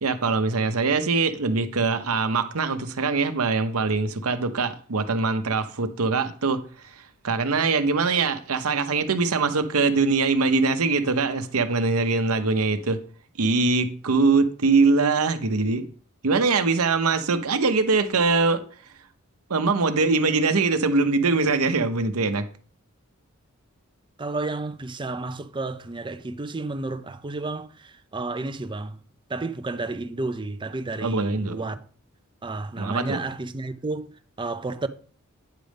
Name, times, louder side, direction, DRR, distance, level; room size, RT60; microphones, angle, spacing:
voice 1, 0.0-13.0 13.4-15.8 16.2-18.6 19.5-22.5 31.0-31.7 32.8-33.2, right 4 dB, 80° right, 0.8 m, -23 dB
voice 2, 24.2-29.0 29.3-31.8 32.4-34.1 34.4-34.9, right 3 dB, 20° right, 0.5 m, -31 dB
9.2 x 3.4 x 6.3 m
head